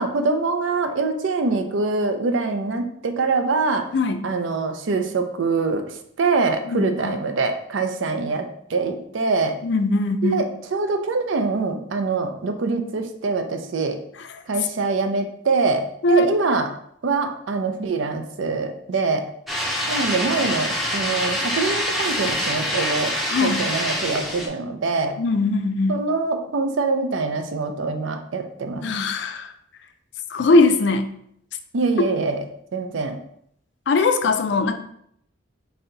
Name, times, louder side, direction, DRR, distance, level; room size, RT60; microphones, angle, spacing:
voice 1, 0.0-3.8 4.2-5.8 6.2-9.5 10.2-14.0 14.5-16.7 17.0-19.2 19.9-23.1 23.4-25.2 25.9-28.9 31.7-32.4 32.7-33.2, right 3 dB, 80° right, 7 dB, 0.5 m, -24 dB
voice 2, 3.9-4.2 6.7-7.2 9.6-10.4 16.0-16.3 23.3-23.6 25.2-26.0 28.8-29.5 30.3-31.1 32.0-32.1 33.9-34.7, left 2 dB, 65° left, 8 dB, 0.4 m, -20 dB
sound 1, 19.5-24.5, equal, ahead, 0.5 m, -25 dB
4.1 x 2.7 x 3.9 m, 0.71 s
head